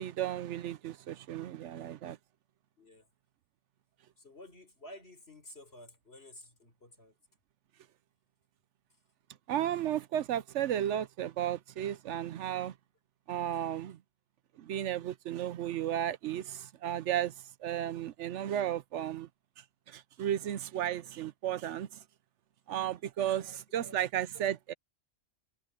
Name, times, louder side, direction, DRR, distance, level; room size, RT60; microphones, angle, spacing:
voice 1, 0.0-2.2 9.5-12.7 13.3-14.0 14.6-17.3 17.6-19.3 19.6-22.0 22.7-24.7, right 11 dB, 75° right, 0.9 m, -34 dB
voice 2, 2.8-3.1 4.2-7.1 23.3-24.0, left 1 dB, 55° left, 5.9 m, -53 dB
omnidirectional pair, 1.3 m